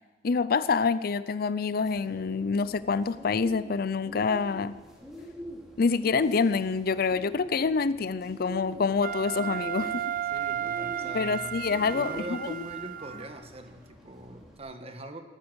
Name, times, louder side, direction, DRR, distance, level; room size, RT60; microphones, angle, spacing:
voice 1, 0.2-4.7 5.8-10.0 11.1-12.7, left 5 dB, 55° left, 16 dB, 0.5 m, -27 dB
Bird, 1.8-14.6, equal, 5° right, 3.1 m, -45 dB
Wind instrument woodwind instrument, 9.0-13.3, right 10 dB, 50° right, 0.6 m, -33 dB
voice 2, 10.3-15.2, right 1 dB, 35° right, 7 dB, 1.4 m, -42 dB
18.5 x 9.6 x 8.0 m, 1.3 s
head